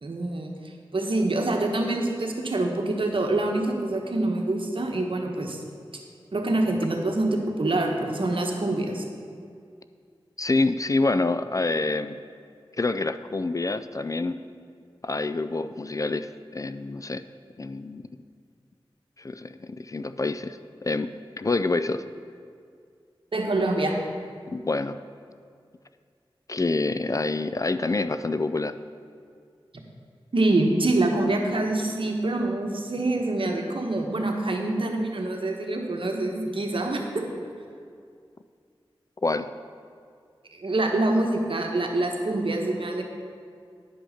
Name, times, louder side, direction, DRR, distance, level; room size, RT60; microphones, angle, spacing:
voice 1, 0.0-5.6 6.3-9.0 23.3-24.0 30.3-37.3 40.5-43.0, right 2 dB, 65° right, 2 dB, 1.2 m, -25 dB
voice 2, 10.4-12.2 12.8-14.3 15.0-17.2 17.6-18.1 19.2-21.1 21.4-22.0 24.5-25.0 26.5-28.7 39.2-39.5, left 3 dB, 35° left, 11 dB, 0.4 m, -27 dB
10.0 x 5.4 x 5.8 m, 2.2 s
cardioid pair, 45°, 10 cm